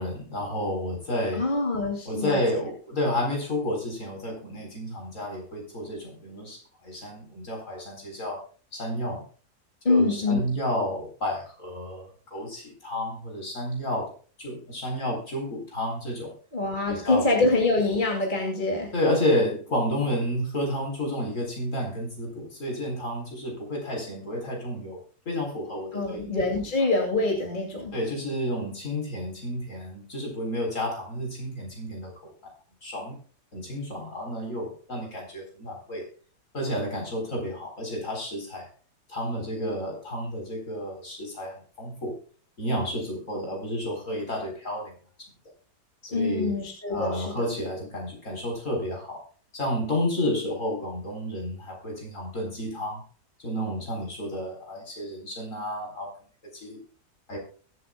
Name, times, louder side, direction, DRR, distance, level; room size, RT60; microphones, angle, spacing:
voice 1, 0.0-1.4 2.1-8.4 8.7-9.3 9.9-14.1 14.4-16.3 16.9-17.5 18.9-26.3 27.9-32.5 32.8-33.2 33.5-36.1 36.5-38.7 39.1-42.2 42.6-45.0 46.0-46.6 46.9-49.2 49.5-53.0 53.4-56.1 56.5-56.8 57.3-57.4, left 1 dB, 45° left, 1 dB, 4.5 m, -31 dB
voice 2, 1.4-2.4 9.8-10.4 16.5-18.9 25.9-27.9 46.1-47.5, left 2 dB, 30° left, 1 dB, 2.5 m, -25 dB
22.0 x 8.3 x 2.3 m, 0.40 s
omnidirectional pair, 1.8 m